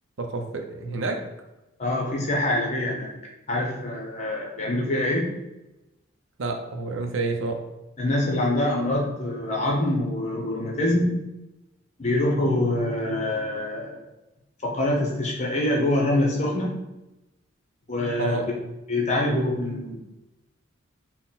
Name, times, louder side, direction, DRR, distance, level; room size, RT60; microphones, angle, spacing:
voice 1, 0.2-1.2 6.4-7.6 18.2-18.5, right 3 dB, 75° right, 4 dB, 0.6 m, -28 dB
voice 2, 1.8-3.1 3.5-5.3 8.0-11.2 12.0-14.0 14.6-16.7 17.9-18.4 18.9-19.9, left 1 dB, 35° left, -2 dB, 0.9 m, -25 dB
3.9 x 2.2 x 4.0 m, 0.98 s
head